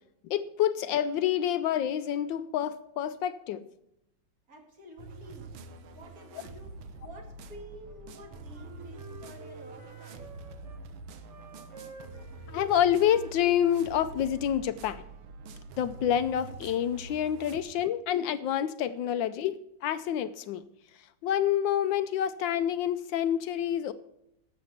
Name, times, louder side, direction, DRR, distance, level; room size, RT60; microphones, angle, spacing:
voice 1, 0.3-3.6 12.5-15.1 15.8-20.6 21.2-23.9, left 10 dB, 75° left, 13 dB, 1.2 m, -28 dB
voice 2, 4.5-5.6 5.9-10.3, equal, 45° right, 2 dB, 2.5 m, -50 dB
sound 1, 5.0-17.6, right 3 dB, 80° right, 1.7 m, -46 dB
Wind instrument woodwind instrument, 7.8-10.8 11.3-14.6, equal, 10° right, 1.5 m, -50 dB
12.0 x 7.6 x 5.8 m, 0.82 s
omnidirectional pair, 2.2 m